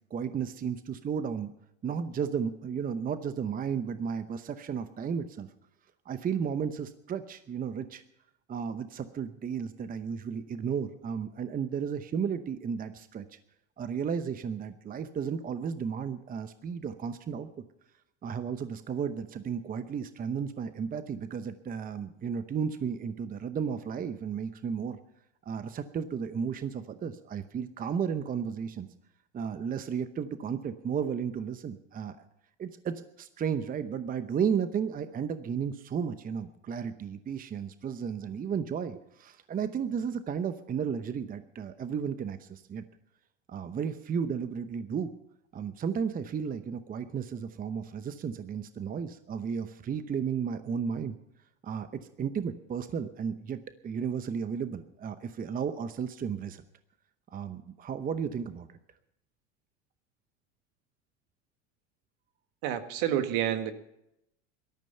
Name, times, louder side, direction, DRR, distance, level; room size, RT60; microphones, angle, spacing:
voice 1, 0.1-1.5 1.8-5.5 6.1-8.0 8.5-13.4 13.8-17.5 18.2-25.0 25.4-28.9 29.3-32.3 32.6-42.8 43.5-45.1 45.5-51.2 51.6-56.6 57.3-58.8, right 7 dB, 25° right, 11 dB, 0.8 m, -33 dB
voice 2, 62.6-63.7, right 11 dB, 60° right, 9 dB, 1.7 m, -29 dB
17.5 x 13.0 x 5.5 m, 0.82 s
hypercardioid pair, 100°, 35 cm